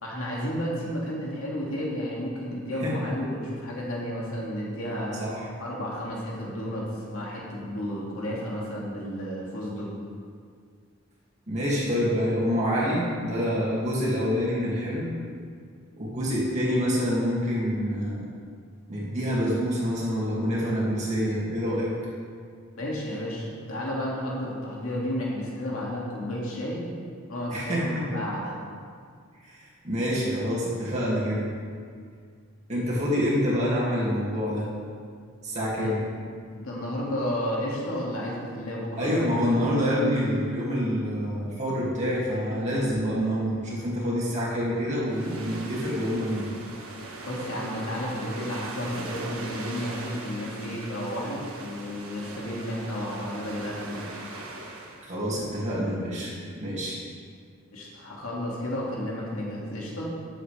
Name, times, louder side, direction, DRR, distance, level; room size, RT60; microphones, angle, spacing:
voice 1, 0.0-5.2 5.6-9.9 22.8-27.0 27.3-28.5 35.8-35.9 36.5-39.1 47.3-54.1 57.7-60.1, equal, 85° left, -5 dB, 2.3 m, -32 dB
voice 2, 11.5-15.1 16.0-18.3 18.9-21.9 27.5-28.0 29.4-31.5 32.7-34.7 35.4-36.0 39.0-46.5 55.0-57.0, equal, 35° right, -7 dB, 2.3 m, -27 dB
sound 1, 45.1-55.0, right 2 dB, 85° right, 1.4 m, -40 dB
14.0 x 7.6 x 3.4 m, 2.1 s
head